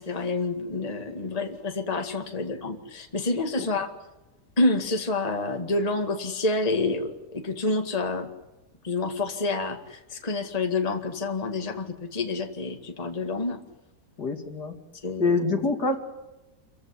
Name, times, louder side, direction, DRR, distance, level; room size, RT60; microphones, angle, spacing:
voice 1, 0.0-3.9 4.6-8.3 8.8-13.6 15.0-15.4, left 2 dB, 20° left, 4 dB, 2.0 m, -28 dB
voice 2, 14.2-14.8 15.2-16.0, left 3 dB, 65° left, 6 dB, 3.1 m, -25 dB
27.0 x 16.0 x 9.9 m, 1.0 s
omnidirectional pair, 1.9 m